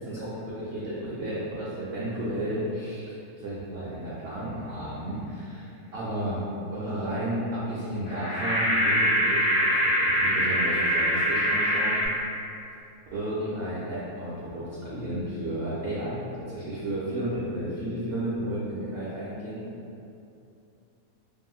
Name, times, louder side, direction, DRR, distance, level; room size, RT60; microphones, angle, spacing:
voice 1, 0.0-6.4 6.7-9.7 10.0-12.0 13.1-19.6, right 1 dB, 60° right, -9 dB, 0.6 m, -32 dB
sound 1, 8.1-12.1, equal, 70° left, 1.1 m, -24 dB
2.8 x 2.6 x 2.3 m, 2.6 s
omnidirectional pair, 1.5 m